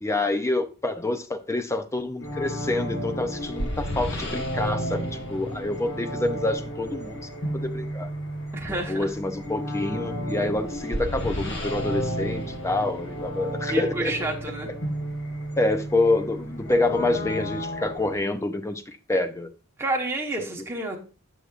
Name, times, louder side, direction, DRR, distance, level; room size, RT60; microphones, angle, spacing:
voice 1, 0.0-7.2 7.5-8.1 8.7-14.1 15.6-19.5, left 2 dB, 15° left, 0.5 m, -27 dB
sound 1, 2.2-18.2, equal, 55° left, 1.2 m, -32 dB
voice 2, 8.5-9.1 13.6-14.7 19.8-21.0, right 2 dB, 10° right, 1.1 m, -29 dB
6.5 x 6.4 x 2.4 m
head